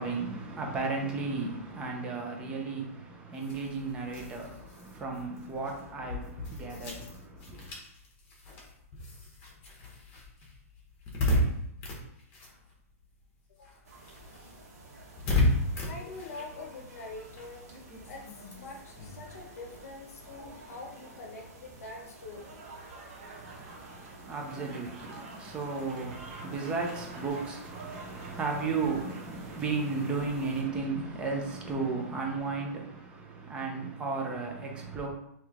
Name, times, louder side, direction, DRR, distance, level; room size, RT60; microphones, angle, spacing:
voice 1, 0.0-7.7 23.4-35.1, right 4 dB, 10° right, 0.5 m, -34 dB
sound 1, 3.3-13.2 13.5-20.5, left 1 dB, 25° left, 0.9 m, -35 dB
voice 2, 13.5-13.8 15.9-17.7 18.0-22.7, left 3 dB, 70° left, 0.7 m, -45 dB
sound 2, 13.8-30.6, right 2 dB, 85° right, 1.3 m, -51 dB
Applause / Crowd, 22.2-31.0, right 3 dB, 40° right, 1.0 m, -49 dB
3.1 x 2.8 x 3.6 m
hypercardioid pair, 165°, 8 cm